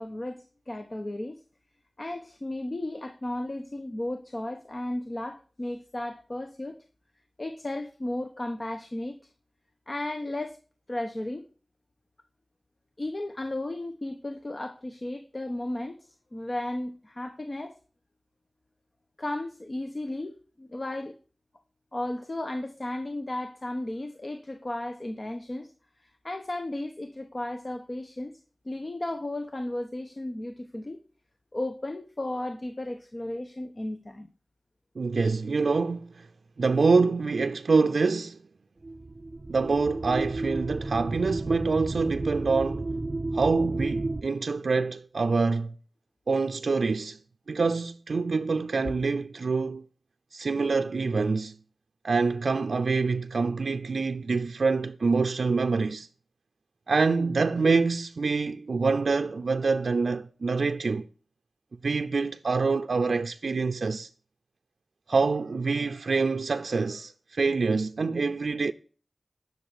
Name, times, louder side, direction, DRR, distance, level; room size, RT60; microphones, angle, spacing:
voice 1, 0.0-1.4 2.0-6.8 7.4-9.2 9.9-10.6 10.9-11.5 13.0-16.0 16.3-17.7 19.2-21.1 21.9-25.7 26.0-28.3 28.6-31.0 31.5-34.3 48.8-49.0, left 1 dB, 40° left, 1.1 m, -34 dB
voice 2, 35.0-36.3 36.6-38.4 39.5-42.9 43.3-45.7 46.3-47.2 47.5-49.8 50.3-51.6 52.0-56.1 56.9-61.1 61.8-64.1 65.1-68.7, right 4 dB, 85° right, 0.5 m, -26 dB
sound 1, 38.8-44.2, right 2 dB, 45° right, 0.6 m, -32 dB
10.5 x 6.8 x 8.1 m
wide cardioid pair, 70°, 0 cm